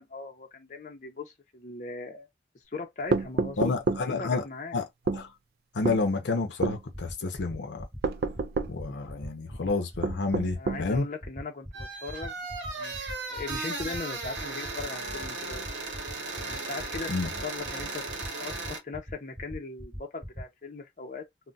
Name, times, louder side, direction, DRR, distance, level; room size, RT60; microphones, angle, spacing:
voice 1, 0.0-2.3 2.7-3.8 4.0-4.8 10.6-12.3 12.7-15.6 16.5-18.0 18.4-21.2, left 3 dB, 45° left, 0.6 m, -39 dB
sound 1, 3.1-4.1 5.1-5.2 5.8-6.0 6.6-6.8 8.0-8.8 10.0-10.9, right 3 dB, 55° right, 0.3 m, -28 dB
voice 2, 3.6-4.4 4.7-4.8 5.1-5.3 5.7-7.9 8.7-11.1 17.1-17.3, left 3 dB, 85° left, 0.6 m, -29 dB
sound 2, 6.9-20.4, equal, 10° right, 0.9 m, -41 dB
sound 3, 11.7-18.8, right 3 dB, 90° right, 0.8 m, -36 dB
2.3 x 2.1 x 3.9 m
head